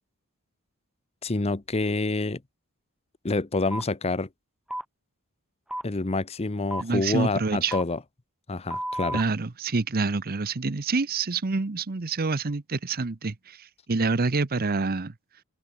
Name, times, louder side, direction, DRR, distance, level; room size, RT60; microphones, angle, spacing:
voice 1, 1.2-2.4 3.2-4.3 5.8-8.0 8.5-9.2, left 3 dB, 30° left, 0.8 m, -27 dB
sound 1, 3.7-3.8 4.7-4.8 5.7-5.8 6.7-6.8 7.7-7.8 8.7-9.2, right 1 dB, 5° right, 0.5 m, -32 dB
voice 2, 6.8-7.8 9.1-15.1, right 3 dB, 45° right, 0.8 m, -27 dB
open air
head